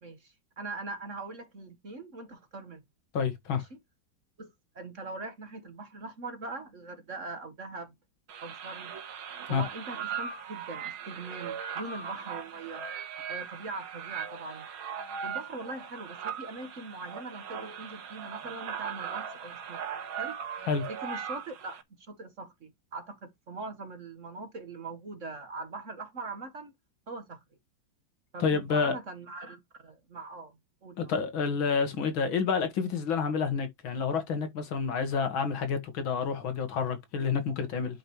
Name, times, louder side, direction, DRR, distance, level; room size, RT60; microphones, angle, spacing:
voice 1, 0.0-2.8 3.5-3.8 4.4-7.9 8.4-8.9 9.5-12.9 13.3-14.7 15.2-20.4 20.9-26.7 27.1-27.4 28.3-31.1, right 3 dB, 40° right, 1.5 m, -42 dB
voice 2, 3.1-3.6 9.5-9.6 20.7-20.8 28.4-28.9 31.0-38.0, left 5 dB, 75° left, 2.3 m, -29 dB
sound 1, 8.3-21.8, right 7 dB, 80° right, 2.1 m, -39 dB
10.0 x 5.4 x 3.0 m
omnidirectional pair, 2.2 m